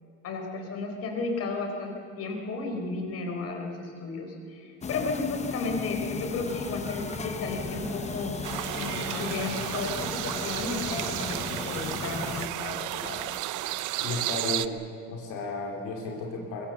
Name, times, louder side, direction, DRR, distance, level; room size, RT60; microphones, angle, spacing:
voice 1, 0.2-8.4 8.7-11.4 11.6-13.2, left 3 dB, 55° left, 3 dB, 4.3 m, -33 dB
sound 1, 4.8-12.5, left 6 dB, 20° left, 0.8 m, -36 dB
sound 2, 6.4-13.2, right 2 dB, 20° right, 3.5 m, -45 dB
sound 3, 8.4-14.7, right 15 dB, 85° right, 0.8 m, -33 dB
voice 2, 14.0-14.8 15.1-16.7, left 3 dB, 80° left, 0 dB, 2.5 m, -33 dB
23.0 x 22.5 x 7.1 m, 2.6 s
cardioid pair, 165°, 30 cm